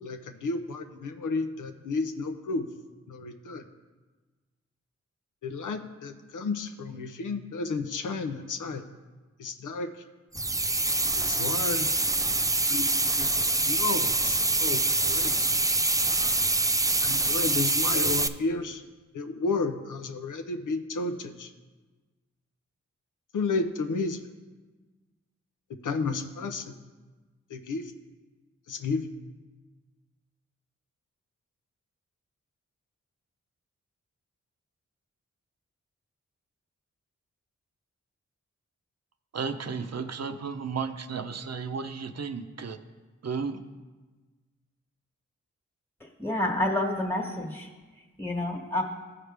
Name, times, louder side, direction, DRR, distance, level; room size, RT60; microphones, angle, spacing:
voice 1, 0.0-2.7 3.1-3.6 5.4-8.8 9.4-9.9 11.2-11.9 12.7-12.9 13.2-13.3 13.6-15.5 17.0-18.8 19.1-21.5 23.3-24.2 25.8-26.7 27.5-27.9 28.7-29.1, left 3 dB, 80° left, 8 dB, 0.7 m, -32 dB
sound 1, 10.3-18.3, right 2 dB, 10° right, 0.4 m, -25 dB
voice 2, 39.3-42.8 43.2-43.6, right 5 dB, 55° right, 8 dB, 0.7 m, -33 dB
voice 3, 46.0-47.7 48.2-48.8, left 1 dB, 5° left, 1 dB, 1.5 m, -29 dB
14.5 x 4.9 x 3.4 m, 1.3 s
cardioid pair, 45°, 31 cm